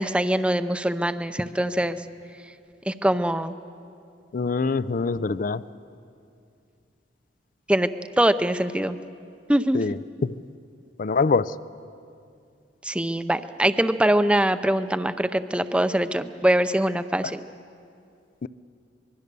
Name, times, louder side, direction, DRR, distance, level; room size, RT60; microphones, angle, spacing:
voice 1, 0.0-2.0 2.9-3.5 7.7-7.9 8.2-9.0 9.5-9.8 12.8-17.4, right 1 dB, 5° right, 12 dB, 0.6 m, -23 dB
voice 2, 4.3-5.6 9.7-10.3 11.0-11.5 18.4-18.5, left 4 dB, 50° left, 17 dB, 0.4 m, -24 dB
25.0 x 21.5 x 6.8 m, 2.5 s
head